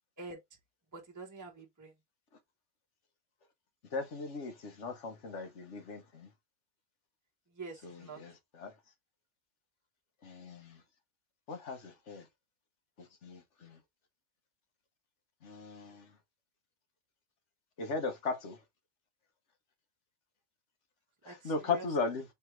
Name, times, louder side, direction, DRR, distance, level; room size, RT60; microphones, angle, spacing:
voice 1, 0.9-1.9 7.5-8.2 21.2-21.9, right 4 dB, 15° right, 1.1 m, -46 dB
voice 2, 3.9-6.3 7.8-8.7 10.2-10.8 11.5-12.2 13.2-13.8 15.4-16.1 17.8-18.6 21.2-22.2, left 4 dB, 60° left, 1.4 m, -37 dB
3.4 x 3.3 x 4.5 m
omnidirectional pair, 1.4 m